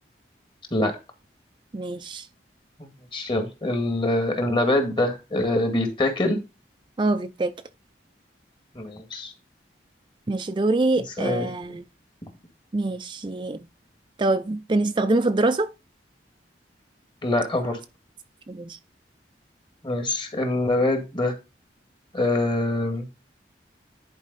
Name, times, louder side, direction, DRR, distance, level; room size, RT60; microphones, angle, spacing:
voice 1, 1.7-2.3 7.0-7.5 10.3-11.8 12.7-13.6 14.2-15.7 18.5-18.8, right 2 dB, 25° right, 0.5 m, -24 dB
voice 2, 2.8-6.4 8.7-9.3 11.2-11.5 17.2-17.8 19.8-21.3 22.1-23.1, left 2 dB, 30° left, 1.8 m, -24 dB
10.5 x 4.7 x 4.1 m
head